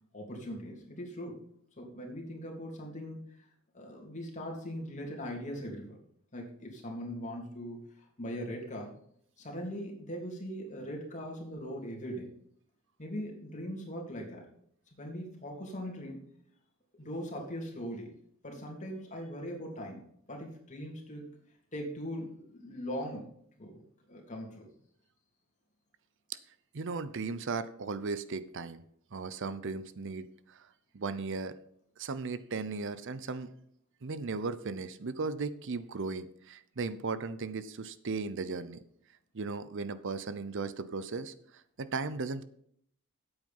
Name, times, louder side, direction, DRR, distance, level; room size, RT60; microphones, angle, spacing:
voice 1, 0.1-1.4 1.8-3.5 3.7-6.0 6.3-8.9 9.4-12.3 13.0-14.5 15.0-16.2 17.0-18.1 18.4-20.0 20.3-21.3 21.7-23.3 23.6-23.8 24.1-24.7, equal, 35° left, -1 dB, 3.1 m, -40 dB
voice 2, 26.7-28.8 29.1-30.7 30.9-31.5 32.0-33.5 34.0-38.8 39.3-42.4, right 4 dB, 60° right, 14 dB, 0.6 m, -36 dB
9.2 x 8.1 x 5.4 m, 0.66 s
head